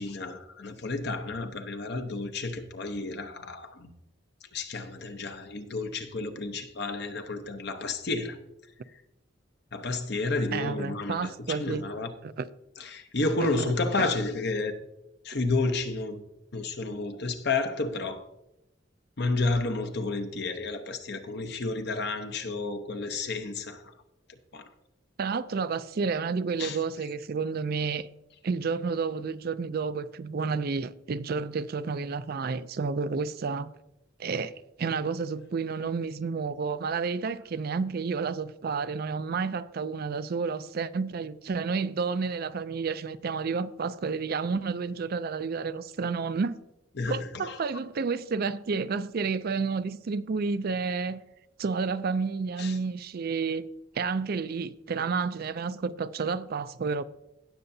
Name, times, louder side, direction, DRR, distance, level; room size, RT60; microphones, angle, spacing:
voice 1, 0.0-3.9 4.5-8.4 9.7-12.1 12.8-14.7 15.2-16.2 16.5-18.3 19.2-23.8 24.5-24.7 26.6-26.8 47.0-47.6 52.6-52.7, left 3 dB, 60° left, 0.9 m, -31 dB
voice 2, 10.5-11.8 12.2-12.5 13.6-13.7 14.0-14.1 25.2-28.1 28.4-33.7 34.2-34.5 34.8-46.6 47.1-51.2 51.6-53.7 53.9-57.0, right 5 dB, 50° right, 0.4 m, -30 dB
17.0 x 6.8 x 2.7 m
head